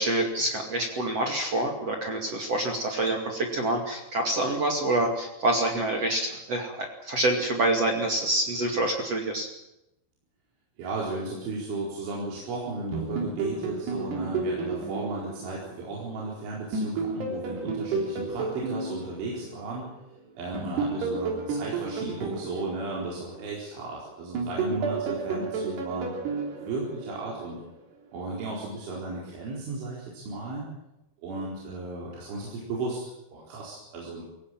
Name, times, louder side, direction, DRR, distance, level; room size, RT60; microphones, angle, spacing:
voice 1, 0.0-9.5, right 1 dB, 40° right, 2 dB, 2.8 m, -27 dB
voice 2, 10.8-19.9 20.4-26.1 26.6-27.6 28.1-30.7 31.2-34.2, right 2 dB, 80° right, -4 dB, 6.9 m, -35 dB
sound 1, 12.9-16.3 16.7-20.0 20.5-23.9 24.3-27.6, right 4 dB, 60° right, 5.3 m, -32 dB
24.0 x 17.5 x 9.1 m, 0.90 s
omnidirectional pair, 5.4 m